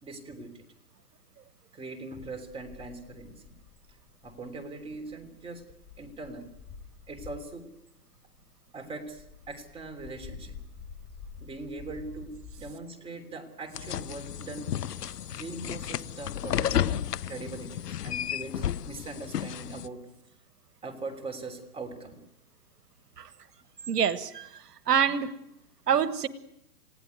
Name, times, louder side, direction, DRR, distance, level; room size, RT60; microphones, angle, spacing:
voice 1, 0.0-0.6 1.7-3.6 4.2-5.6 6.0-6.5 7.1-7.7 8.7-10.6 11.4-14.7 15.4-20.1 20.8-22.2, right 3 dB, 10° right, 5 dB, 3.2 m, -41 dB
sound 1, 2.2-7.6 8.1-12.7, left 6 dB, 20° left, 4.9 m, -48 dB
sound 2, 13.7-19.9, left 10 dB, 80° left, 0.9 m, -32 dB
voice 2, 23.9-25.3 25.9-26.3, right 8 dB, 80° right, 13 dB, 1.5 m, -26 dB
29.0 x 17.0 x 9.4 m, 0.87 s
hypercardioid pair, 140°, 47 cm